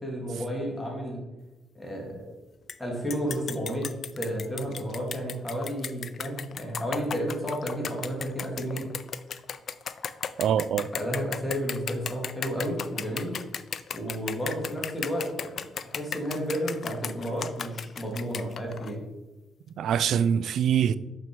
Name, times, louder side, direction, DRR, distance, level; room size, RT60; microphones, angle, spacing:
voice 1, 0.0-1.2 1.7-2.2 2.8-3.9 4.1-8.9 10.9-13.4 13.9-19.0, equal, 10° left, 2.6 m, -32 dB
sound 1, 2.7-2.8 3.1-18.9, left 7 dB, 55° left, 0.4 m, -35 dB
voice 2, 10.4-10.9 19.8-20.9, right 8 dB, 70° right, 0.3 m, -24 dB
6.0 x 5.8 x 5.3 m
cardioid pair, 90°, 0 cm